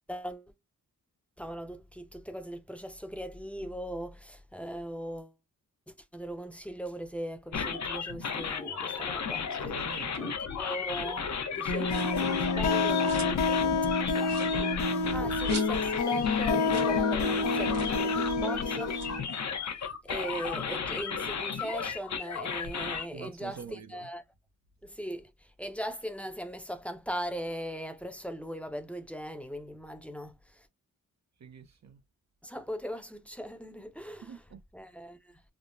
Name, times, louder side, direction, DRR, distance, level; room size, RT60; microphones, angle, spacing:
voice 1, 0.1-0.5 1.4-5.3 5.9-9.5 10.2-13.6 14.1-18.9 20.0-24.2 24.8-25.3 25.6-30.7 32.4-34.4 34.7-35.2, equal, 5° left, 0.6 m, -39 dB
sound 1, 7.5-23.1, left 6 dB, 55° left, 0.7 m, -34 dB
voice 2, 9.6-10.3 23.1-24.1 31.4-32.0 34.2-34.6, right 6 dB, 55° right, 0.7 m, -45 dB
sound 2, 11.7-19.2, left 4 dB, 80° left, 0.8 m, -28 dB
sound 3, 11.8-12.3 12.7-13.5 13.8-13.9 14.2-16.1 16.3-16.4 16.6-17.0 17.2-17.3 17.7-18.0 18.8-20.5 20.9-22.4, right 4 dB, 85° right, 1.5 m, -47 dB
3.6 x 2.0 x 2.5 m
cardioid pair, 65°, 33 cm